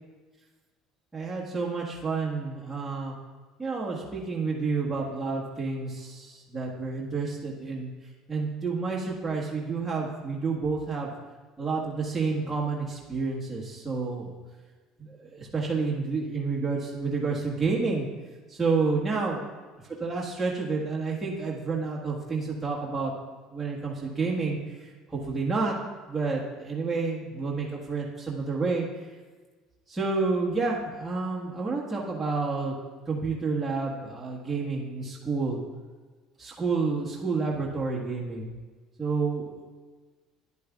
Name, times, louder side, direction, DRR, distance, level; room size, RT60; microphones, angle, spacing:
voice 1, 1.1-3.1 3.6-7.9 8.3-11.1 11.6-14.3 15.0-18.1 18.5-19.4 20.0-23.1 23.5-25.8 26.1-28.8 29.9-32.7 33.0-35.6 36.4-38.5 39.0-39.4, right 4 dB, 10° right, -5 dB, 1.6 m, -29 dB
10.5 x 8.2 x 2.4 m, 1.3 s
supercardioid pair, 90°, 0 cm